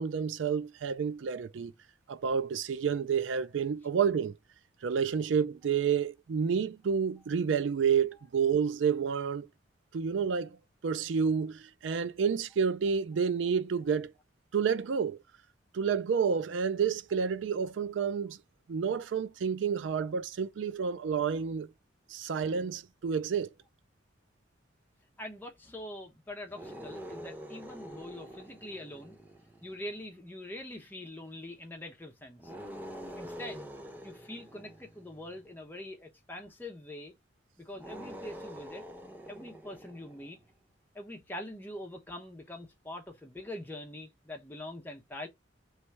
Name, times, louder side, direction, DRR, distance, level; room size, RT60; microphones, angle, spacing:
voice 1, 0.0-1.7 2.1-4.3 4.8-9.5 9.9-10.6 10.8-14.1 14.5-15.2 15.7-18.4 18.7-21.7 22.1-23.5, right 6 dB, 85° right, 0.4 m, -29 dB
voice 2, 25.2-29.2 29.6-32.5 33.2-33.7 34.0-37.1 37.6-38.8 39.3-40.4 40.9-45.3, left 1 dB, 10° left, 0.9 m, -44 dB
sound 1, 26.4-30.0 32.4-35.5 37.7-40.4, equal, 10° right, 0.5 m, -46 dB
3.2 x 3.1 x 4.6 m
head